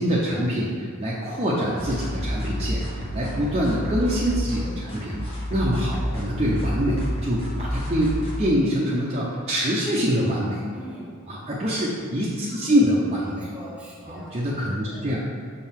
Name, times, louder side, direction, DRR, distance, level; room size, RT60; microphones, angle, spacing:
voice 1, 0.0-5.2 5.5-8.1 8.4-10.6 11.3-13.5 14.1-15.2, equal, 30° right, -6 dB, 0.7 m, -25 dB
sound 1, 1.8-8.4, equal, 30° left, 1.3 m, -29 dB
voice 2, 10.7-11.2 12.6-12.8 13.1-15.1, right 1 dB, 5° right, -5 dB, 1.3 m, -43 dB
6.7 x 4.5 x 3.6 m, 2.1 s
head